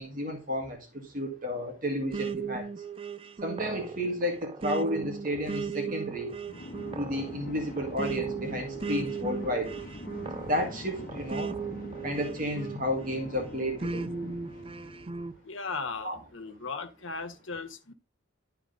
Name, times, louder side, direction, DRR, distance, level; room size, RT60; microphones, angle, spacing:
voice 1, 0.0-2.7 3.4-6.3 7.0-9.7 10.4-11.6 12.0-14.1 16.0-16.2, equal, 40° right, 1.8 m, -32 dB
sound 1, 2.1-13.2 13.8-15.3, right 5 dB, 25° right, 0.4 m, -37 dB
sound 2, 6.4-15.4, left 1 dB, 40° left, 1.2 m, -43 dB
voice 2, 15.4-17.9, left 4 dB, 75° left, 1.3 m, -37 dB
11.5 x 4.7 x 3.8 m
head